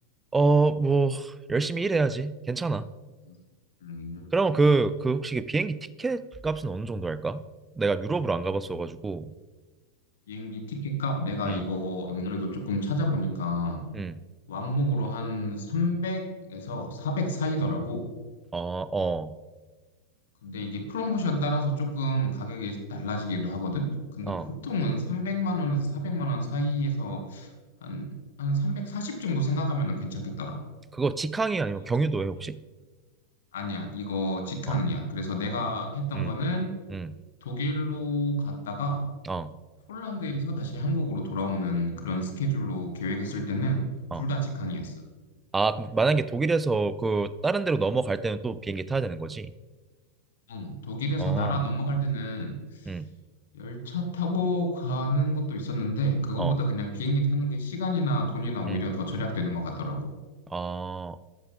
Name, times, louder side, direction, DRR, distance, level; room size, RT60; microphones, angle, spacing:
voice 1, 0.3-2.9 4.3-7.4 7.8-9.3 11.4-11.6 13.9-14.2 18.5-19.3 24.3-24.5 30.9-32.6 34.7-34.8 36.1-36.3 36.9-37.2 39.3-39.5 44.1-44.2 45.5-49.5 51.2-51.6 52.9-53.1 56.4-56.6 58.7-58.8 60.5-61.2, right 3 dB, 10° right, 16 dB, 0.4 m, -27 dB
voice 2, 3.8-4.2 10.3-13.8 14.5-16.2 16.5-18.0 20.4-23.9 24.1-27.5 27.8-30.6 33.5-36.7 37.4-39.0 39.9-43.8 44.1-44.9 50.5-52.9 53.5-60.1, equal, 60° left, 2 dB, 2.2 m, -29 dB
14.0 x 10.0 x 3.5 m, 1.3 s
figure-of-eight pair, 90°, 0 cm